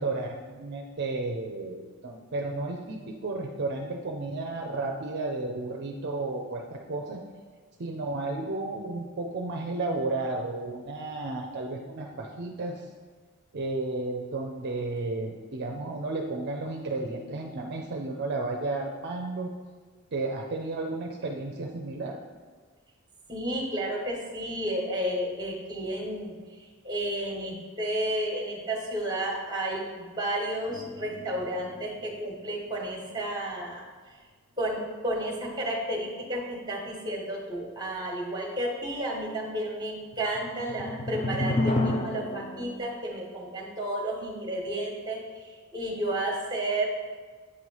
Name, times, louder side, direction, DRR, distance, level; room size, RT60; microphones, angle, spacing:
voice 1, 0.0-7.2 7.8-12.8 13.5-19.5 20.1-22.2, right 2 dB, 50° right, 1 dB, 0.5 m, -33 dB
voice 2, 23.3-26.3 26.8-33.9 34.6-45.4 45.7-46.9, right 1 dB, 20° right, 0 dB, 1.2 m, -32 dB
sound 1, 30.7-32.4 32.7-32.8 40.1-42.8, left 2 dB, 30° left, 0.4 m, -31 dB
8.0 x 3.2 x 5.4 m, 1.5 s
head